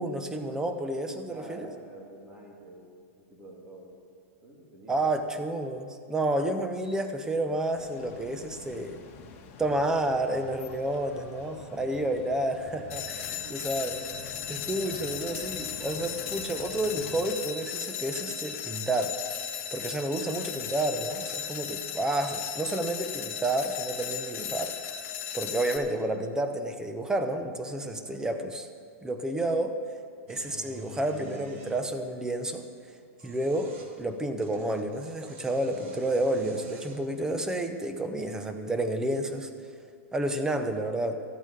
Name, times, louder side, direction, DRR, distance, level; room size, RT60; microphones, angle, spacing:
voice 1, 0.0-1.7 4.9-9.0 9.6-19.1 19.7-24.7 25.3-28.7 29.0-29.8 30.3-32.7 33.2-39.5 40.1-41.2, right 1 dB, 10° right, 7 dB, 0.9 m, -30 dB
voice 2, 1.3-2.8 3.1-3.9 4.4-5.0 11.4-11.7 13.3-13.9 14.7-15.2 28.0-28.3, right 1 dB, 25° right, -2 dB, 3.1 m, -48 dB
sound 1, 7.8-17.2, left 5 dB, 40° left, 1.9 m, -47 dB
sound 2, 12.9-25.8, left 9 dB, 60° left, 1.6 m, -36 dB
sound 3, 30.3-31.8 33.0-33.9 34.4-37.1, right 3 dB, 70° right, 1.9 m, -48 dB
13.5 x 8.8 x 6.8 m, 2.3 s
supercardioid pair, 140°, 7 cm